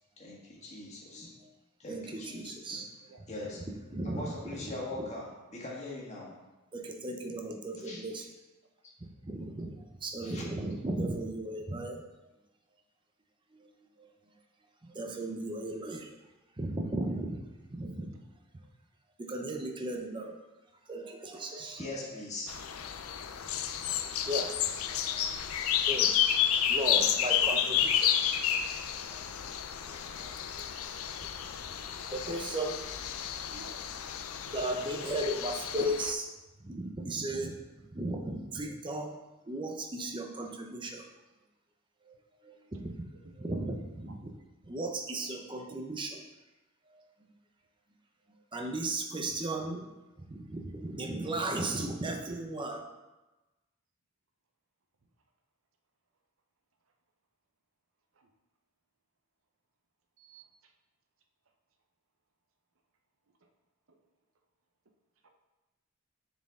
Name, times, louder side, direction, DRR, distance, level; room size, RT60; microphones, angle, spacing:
voice 1, 0.2-1.3 1.8-2.8 3.3-3.6 4.0-6.3 7.8-8.0 8.8-8.9 10.2-10.4 21.8-22.5 29.4-29.6, left 2 dB, 30° left, -4 dB, 1.5 m, -41 dB
voice 2, 1.9-2.9 3.9-4.2 6.7-8.2 9.2-12.0 13.5-13.7 14.0-14.1 14.8-16.1 16.6-17.4 17.7-18.2 19.2-20.4 20.9-21.8 24.3-24.6 24.9-25.3 25.9-26.1 26.7-28.1 29.1-29.2 29.8-30.3 30.5-30.6 32.1-32.8 34.5-36.3 36.6-37.5 37.9-39.2 39.5-41.1 42.1-42.2 42.4-43.0 43.4-44.3 44.6-46.2 46.9-47.0 48.5-49.8 50.2-52.8, right 1 dB, 25° right, 3 dB, 0.6 m, -36 dB
sound 1, 22.5-36.1, left 9 dB, 75° left, 0.4 m, -31 dB
voice 3, 33.2-33.9 34.4-34.6 37.3-37.5 51.0-51.3 58.2-58.3 60.2-60.4 63.9-64.0 65.2-65.3, right 3 dB, 70° right, 4 dB, 0.7 m, -53 dB
6.9 x 4.4 x 3.6 m, 1.1 s
head